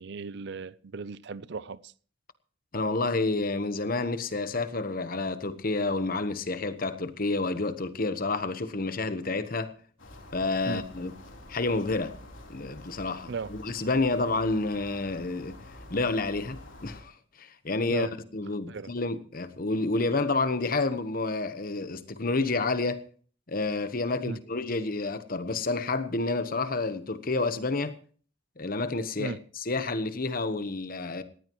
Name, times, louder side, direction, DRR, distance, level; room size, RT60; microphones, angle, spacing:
voice 1, 0.0-1.9 10.7-10.8 13.3-13.5 17.9-18.1 18.7-18.9 24.2-24.4 29.2-29.4, right 4 dB, 60° right, 0.5 m, -36 dB
voice 2, 2.7-9.7 10.3-11.1 11.5-12.1 12.5-15.6 15.9-23.0 23.5-28.0 28.6-31.2, left 3 dB, 45° left, 1.1 m, -29 dB
sound 1, 10.0-17.0, left 1 dB, 85° left, 3.8 m, -47 dB
18.5 x 15.5 x 3.1 m
head